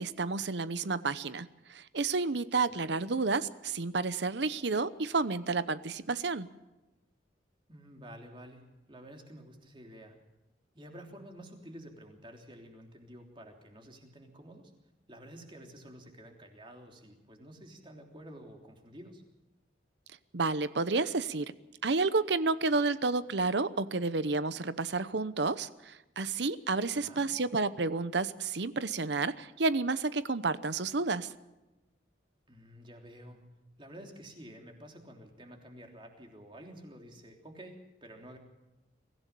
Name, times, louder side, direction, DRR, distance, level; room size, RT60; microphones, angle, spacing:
voice 1, 0.0-6.5 20.3-21.5 21.8-31.3, right 3 dB, 70° right, 14 dB, 0.8 m, -30 dB
voice 2, 7.7-10.2 10.7-14.7 15.1-19.2 26.9-27.3 32.5-33.4 33.8-38.4, equal, 25° right, 3 dB, 3.3 m, -50 dB
24.0 x 15.5 x 6.9 m, 1.0 s
head